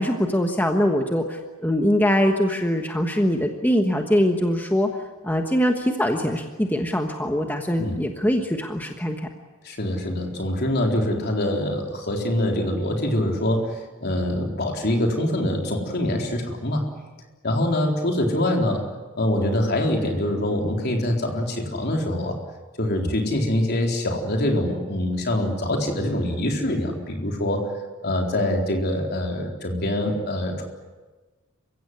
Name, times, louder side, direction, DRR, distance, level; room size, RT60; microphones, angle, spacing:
voice 1, 0.0-4.9 5.2-9.3, equal, 10° left, 3 dB, 1.3 m, -22 dB
voice 2, 9.6-16.9 17.4-18.9 19.2-22.4 22.8-27.7 28.0-30.6, left 1 dB, 50° left, 2 dB, 4.1 m, -24 dB
28.5 x 16.0 x 9.7 m, 1.3 s
head